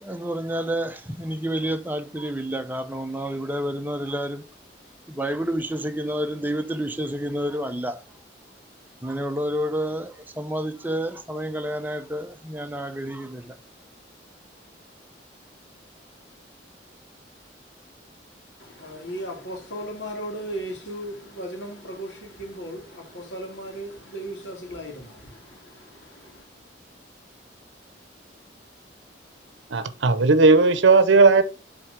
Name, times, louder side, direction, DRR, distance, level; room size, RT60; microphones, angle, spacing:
voice 1, 0.0-4.4 5.1-8.0 9.0-13.6, equal, 10° right, 0.7 m, -29 dB
voice 2, 18.6-26.4, right 1 dB, 85° left, 2.2 m, -36 dB
voice 3, 29.7-31.4, right 3 dB, 85° right, 0.7 m, -16 dB
7.5 x 3.7 x 4.9 m
head